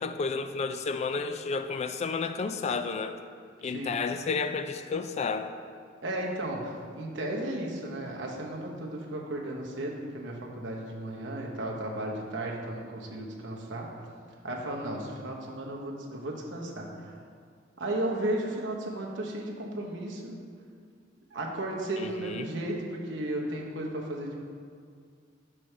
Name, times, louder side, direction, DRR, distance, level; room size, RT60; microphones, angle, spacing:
voice 1, 0.0-3.2 3.6-5.5 22.0-22.5, left 4 dB, 35° left, 9 dB, 0.3 m, -31 dB
voice 2, 3.6-4.0 6.0-13.9 14.4-17.1 17.8-20.4 21.3-24.4, right 1 dB, 70° right, -1 dB, 0.9 m, -34 dB
6.1 x 3.3 x 5.9 m, 2.1 s
head